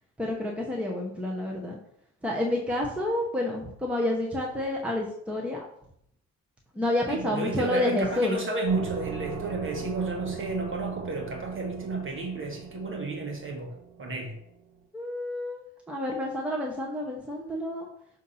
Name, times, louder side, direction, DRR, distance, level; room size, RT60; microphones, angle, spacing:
voice 1, 0.2-1.8 2.2-5.6 6.7-8.4 14.9-17.9, left 1 dB, 5° right, -2 dB, 1.0 m, -29 dB
voice 2, 7.1-14.4, right 3 dB, 45° right, 2 dB, 1.2 m, -32 dB
sound 1, 8.7-14.6, right 5 dB, 65° right, 1.4 m, -39 dB
6.3 x 2.8 x 5.5 m, 0.70 s
cardioid pair, 90°, 30 cm